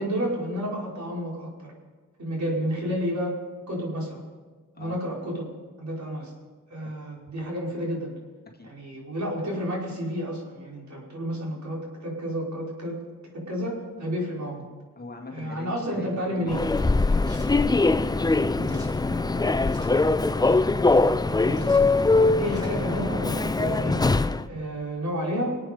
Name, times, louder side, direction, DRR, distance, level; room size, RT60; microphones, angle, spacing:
voice 1, 0.0-1.7 2.2-3.4 3.7-4.2 4.8-5.5 5.8-6.3 6.7-8.1 8.7-13.0 13.3-14.7 15.3-16.6 18.5-18.8 19.1-19.5 21.4-21.7 22.2-24.0 24.4-25.6, equal, 65° right, -4 dB, 5.1 m, -31 dB
voice 2, 15.0-16.1 16.4-17.6 18.1-18.8 19.3-20.0, left 3 dB, 30° left, 0 dB, 2.2 m, -42 dB
Human voice / Subway metro underground, 16.5-24.4, left 3 dB, 15° left, 0.4 m, -22 dB
sound 1, 17.2-17.5 18.6-18.9 19.7-19.9 21.6-21.8 22.5-22.8, equal, 15° right, 2.9 m, -50 dB
25.0 x 8.7 x 5.4 m, 1.5 s
wide cardioid pair, 110°, 31 cm